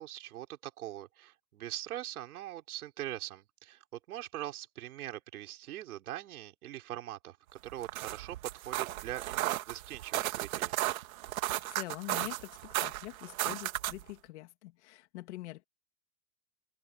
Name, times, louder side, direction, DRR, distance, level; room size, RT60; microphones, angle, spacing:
voice 1, 0.0-10.7, right 13 dB, 90° right, 4.6 m, -42 dB
sound 1, 7.7-14.1, right 15 dB, 70° right, 2.2 m, -35 dB
voice 2, 11.7-15.7, left 18 dB, 50° left, 2.5 m, -44 dB
supercardioid pair, 175°, 43 cm